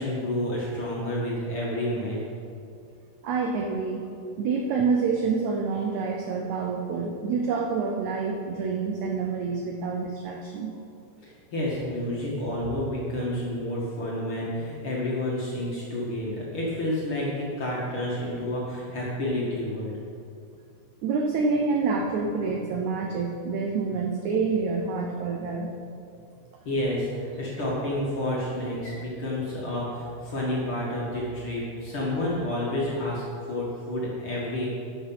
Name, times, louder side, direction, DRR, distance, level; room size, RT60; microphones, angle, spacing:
voice 1, 0.0-2.2 11.2-19.9 26.7-33.2 33.5-34.7, left 1 dB, 45° left, -5 dB, 2.2 m, -29 dB
voice 2, 3.2-4.1 4.4-10.7 21.0-25.7, right 4 dB, 85° right, 1 dB, 1.6 m, -27 dB
12.0 x 6.7 x 5.8 m, 2.5 s
omnidirectional pair, 4.3 m